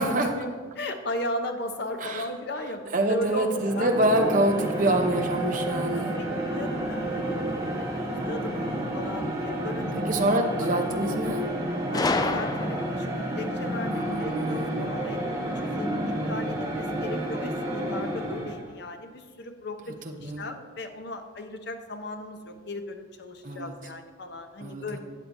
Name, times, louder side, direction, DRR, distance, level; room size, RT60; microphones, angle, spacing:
voice 1, 0.0-3.9 6.0-7.4 7.7-9.9 10.4-10.7 11.9-19.9 20.2-25.0, left 1 dB, 55° left, 6 dB, 0.8 m, -36 dB
voice 2, 2.9-6.1 9.9-11.4 13.9-14.9 20.0-20.5 23.4-23.7 24.6-25.0, right 1 dB, 40° right, 3 dB, 0.9 m, -26 dB
sound 1, 3.5-18.8, right 1 dB, 15° right, 1.4 m, -30 dB
Gunshot gunfire, 11.9-13.2, left 3 dB, 20° left, 0.3 m, -28 dB
13.0 x 8.5 x 2.7 m, 1.5 s
head